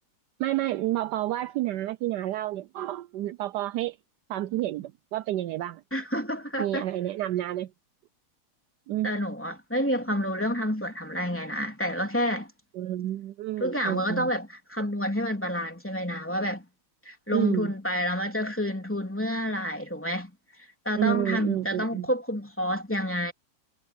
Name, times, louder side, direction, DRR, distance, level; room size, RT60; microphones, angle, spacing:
voice 1, 0.4-4.0 4.3-5.8 6.6-7.7 8.9-9.1 12.7-14.3 17.3-17.7 21.0-22.1, right 14 dB, 80° right, 0.9 m, -29 dB
voice 2, 5.9-6.9 9.0-12.5 13.6-16.6 17.0-20.3 20.8-23.3, equal, 5° left, 3.2 m, -29 dB
omnidirectional pair, 2.3 m